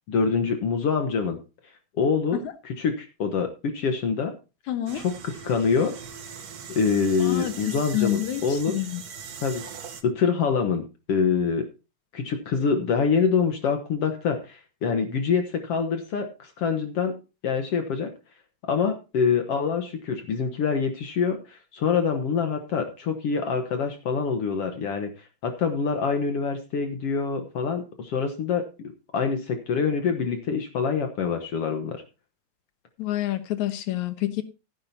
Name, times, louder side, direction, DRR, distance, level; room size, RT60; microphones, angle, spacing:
voice 1, 0.1-1.4 1.9-4.3 4.9-5.1 5.4-5.9 6.7-8.7 9.4-9.6 10.0-11.6 12.1-17.1 17.4-18.1 18.7-28.6 29.1-32.0, left 5 dB, 60° left, 2.0 m, -25 dB
voice 2, 4.7-5.0 7.2-9.0 33.0-34.4, left 14 dB, 75° left, 2.5 m, -28 dB
sound 1, 4.9-10.0, right 6 dB, 80° right, 0.8 m, -40 dB
15.5 x 10.0 x 2.7 m
omnidirectional pair, 3.4 m